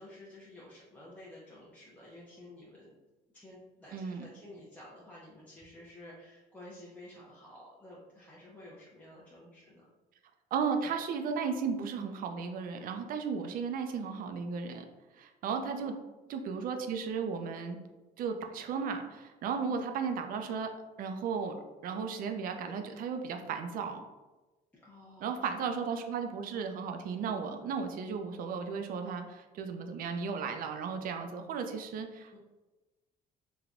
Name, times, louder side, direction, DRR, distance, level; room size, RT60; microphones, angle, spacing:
voice 1, 0.0-3.0 3.3-9.8 15.6-15.9 19.6-19.8 24.7-25.7 32.3-32.4, left 1 dB, 10° left, -7 dB, 0.5 m, -52 dB
voice 2, 3.9-4.3 10.5-14.8 15.2-16.0 16.3-17.8 18.2-20.7 21.0-21.5 21.8-24.0 25.2-32.4, right 6 dB, 55° right, 5 dB, 0.4 m, -35 dB
3.2 x 2.2 x 2.5 m, 1.1 s
cardioid pair, 110°, 17 cm